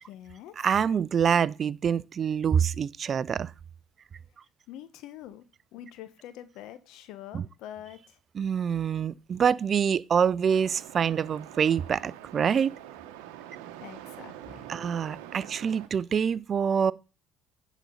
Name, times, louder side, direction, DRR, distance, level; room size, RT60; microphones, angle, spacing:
voice 1, 0.0-0.7 4.7-5.5 5.7-8.2 13.8-14.6, left 11 dB, 70° left, 0.9 m, -45 dB
voice 2, 0.6-3.5 7.3-7.5 8.4-12.7 14.7-16.9, right 7 dB, 45° right, 0.4 m, -26 dB
sound 1, 10.4-15.9, right 12 dB, 85° right, 0.9 m, -45 dB
10.0 x 4.1 x 5.5 m
supercardioid pair, 75°, 0 cm